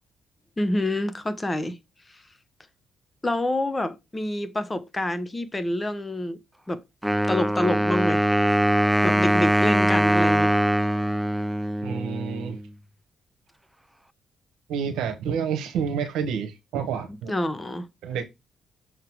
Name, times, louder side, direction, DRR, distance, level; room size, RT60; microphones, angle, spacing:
voice 1, 0.6-1.8 2.1-2.2 3.2-6.4 6.7-6.8 7.3-8.6 9.0-10.5 17.3-17.9, left 1 dB, 20° left, 1.0 m, -27 dB
Wind instrument woodwind instrument, 7.0-12.7, right 1 dB, 5° right, 0.3 m, -22 dB
voice 2, 11.8-12.6 14.7-17.3 18.0-18.2, right 7 dB, 85° right, 1.2 m, -29 dB
6.4 x 3.9 x 4.6 m
cardioid pair, 90°, 0 cm